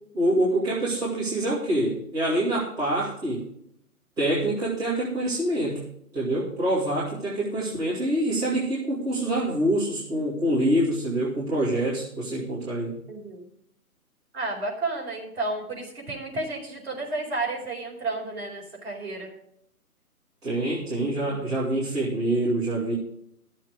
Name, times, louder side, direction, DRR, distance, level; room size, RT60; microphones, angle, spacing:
voice 1, 0.1-3.5 4.2-5.8 6.1-13.0 20.4-22.9, right 1 dB, 10° right, -11 dB, 2.5 m, -26 dB
voice 2, 13.1-13.5 14.3-19.3 21.2-21.6, right 2 dB, 40° right, -3 dB, 4.6 m, -32 dB
13.5 x 7.5 x 5.1 m, 0.72 s
hypercardioid pair, 165°, 46 cm